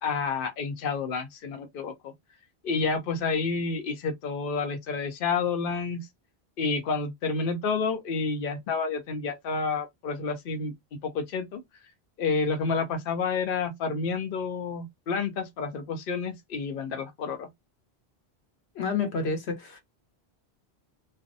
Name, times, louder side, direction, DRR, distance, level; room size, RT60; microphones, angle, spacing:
voice 1, 0.0-2.1 2.6-6.0 6.6-10.7 11.0-11.6 12.2-17.5, left 4 dB, 60° left, 0.8 m, -29 dB
voice 2, 18.7-19.8, left 5 dB, 85° left, 1.1 m, -29 dB
2.5 x 2.0 x 2.5 m
omnidirectional pair, 1.1 m